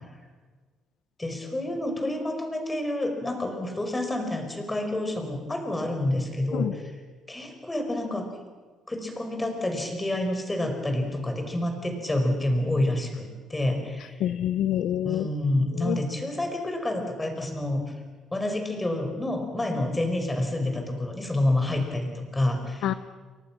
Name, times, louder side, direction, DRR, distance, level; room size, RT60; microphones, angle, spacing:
voice 1, 1.2-6.9 7.3-8.3 8.9-14.3 15.0-17.8 18.3-23.0, left 1 dB, 10° left, 4 dB, 5.4 m, -28 dB
voice 2, 14.2-15.3 15.8-16.0 22.8-22.9, left 12 dB, 75° left, 12 dB, 0.9 m, -26 dB
30.0 x 23.0 x 6.1 m, 1.4 s
cardioid pair, 130°, 0 cm